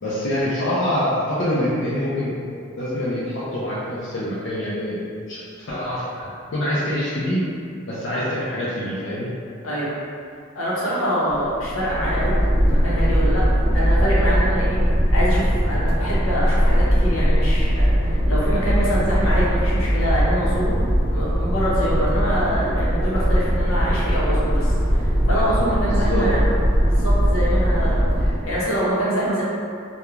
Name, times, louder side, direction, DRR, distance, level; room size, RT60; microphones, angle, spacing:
voice 1, 0.0-2.4 2.8-6.2 6.5-7.4 7.9-9.3 25.8-26.3, left 1 dB, 60° left, -9 dB, 0.5 m, -25 dB
voice 2, 10.5-12.4 12.6-13.4 13.7-20.7 21.1-26.5 26.9-29.4, equal, 85° left, -8 dB, 0.8 m, -25 dB
sound 1, 11.3-28.6, equal, 45° right, 0.5 m, -20 dB
2.4 x 2.2 x 3.0 m, 2.4 s
head